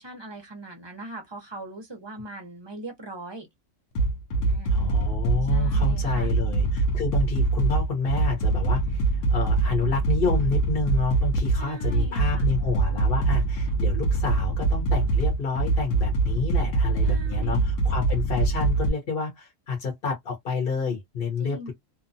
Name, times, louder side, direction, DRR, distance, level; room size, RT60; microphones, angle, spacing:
voice 1, 0.0-3.5 4.4-4.8 5.5-6.3 11.6-12.5 17.0-17.7 21.4-21.7, right 1 dB, 30° right, 0.6 m, -40 dB
sound 1, 4.0-18.9, right 3 dB, 90° left, 1.0 m, -24 dB
voice 2, 4.7-21.7, left 4 dB, 50° left, 1.0 m, -29 dB
2.7 x 2.2 x 2.6 m
omnidirectional pair, 1.3 m